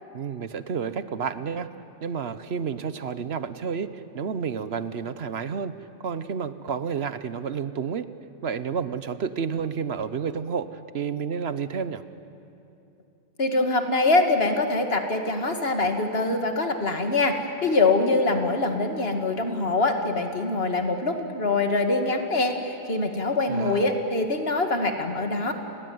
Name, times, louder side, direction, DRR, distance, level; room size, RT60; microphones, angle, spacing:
voice 1, 0.1-1.7 2.0-5.7 6.0-8.1 8.4-10.7 10.9-12.0 23.5-23.9, right 6 dB, 65° right, 13 dB, 1.1 m, -30 dB
voice 2, 13.4-25.5, left 2 dB, 55° left, 5 dB, 2.3 m, -24 dB
29.5 x 20.5 x 9.5 m, 2.8 s
omnidirectional pair, 1.2 m